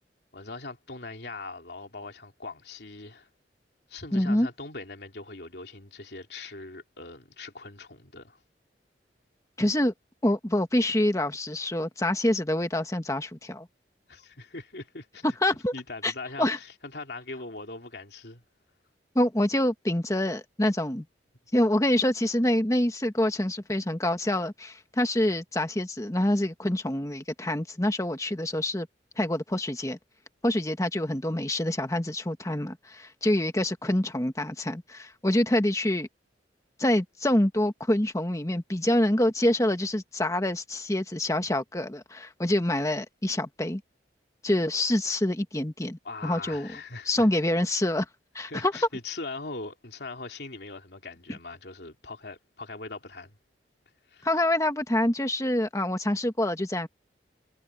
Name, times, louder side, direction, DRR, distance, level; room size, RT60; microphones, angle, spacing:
voice 1, 0.3-3.3 3.9-8.4 14.1-15.3 15.7-18.4 46.0-47.3 48.4-53.4 54.1-54.3, left 3 dB, 65° left, 2.9 m, -41 dB
voice 2, 4.1-4.5 9.6-9.9 10.2-13.7 15.2-15.7 16.0-16.1 16.4-16.6 19.1-21.0 21.5-28.9 29.2-30.0 30.4-36.1 36.8-43.8 44.4-46.7 47.1-48.0 48.3-48.7 54.2-56.9, left 1 dB, 20° left, 1.4 m, -26 dB
head